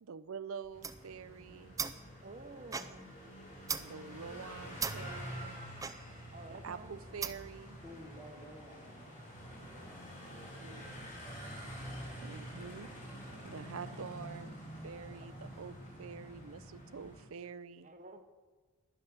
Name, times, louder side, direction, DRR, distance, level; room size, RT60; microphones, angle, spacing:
voice 1, 0.0-1.8 3.8-5.6 6.5-7.8 10.6-11.0 12.2-12.9 13.4-17.9, right 6 dB, 65° right, 15 dB, 0.5 m, -47 dB
sound 1, 0.6-7.6, right 6 dB, 15° right, 0.4 m, -42 dB
sound 2, 0.7-17.2, equal, 35° left, 3.3 m, -47 dB
voice 2, 2.2-3.1 6.3-7.0 15.0-15.1 17.8-18.3, right 3 dB, 35° right, 6 dB, 0.9 m, -51 dB
voice 3, 7.8-9.1 9.5-10.9 11.2-12.2, equal, 10° left, -3 dB, 1.5 m, -55 dB
11.0 x 9.9 x 6.0 m, 1.3 s
head